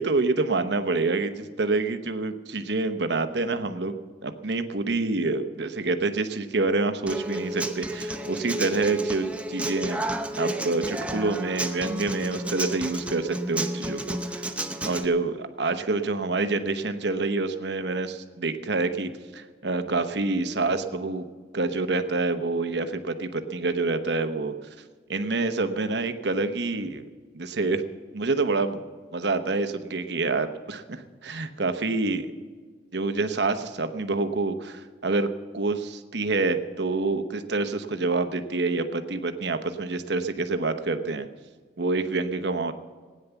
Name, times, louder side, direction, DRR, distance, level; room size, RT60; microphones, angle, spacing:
voice 1, 0.0-10.1 10.4-14.5 14.8-21.3 21.5-24.5 25.1-27.0 27.3-27.8 28.1-28.8 29.1-32.3 32.9-35.3 35.5-41.3 41.8-42.7, right 3 dB, 65° right, 8 dB, 1.0 m, -27 dB
Human voice / Acoustic guitar, 7.1-15.0, right 1 dB, 5° right, 0.8 m, -31 dB
17.0 x 9.6 x 7.0 m, 1.5 s
head